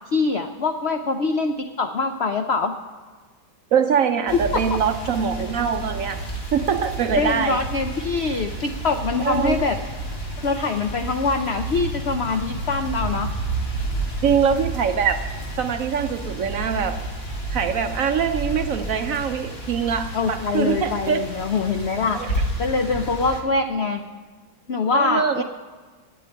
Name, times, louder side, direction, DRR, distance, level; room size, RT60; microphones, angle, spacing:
voice 1, 0.1-2.8 4.5-4.8 7.2-9.8 10.4-13.3 20.1-22.2 22.6-24.0 24.7-25.4, left 4 dB, 75° left, 6 dB, 0.6 m, -24 dB
voice 2, 3.7-6.2 6.5-7.6 9.2-9.6 14.2-15.2 15.6-17.0 17.5-21.2 22.1-22.4 24.9-25.4, right 7 dB, 65° right, 7 dB, 0.8 m, -23 dB
sound 1, 4.3-23.4, right 2 dB, 35° left, 2.0 m, -31 dB
10.0 x 8.6 x 9.2 m, 1.4 s
omnidirectional pair, 1.9 m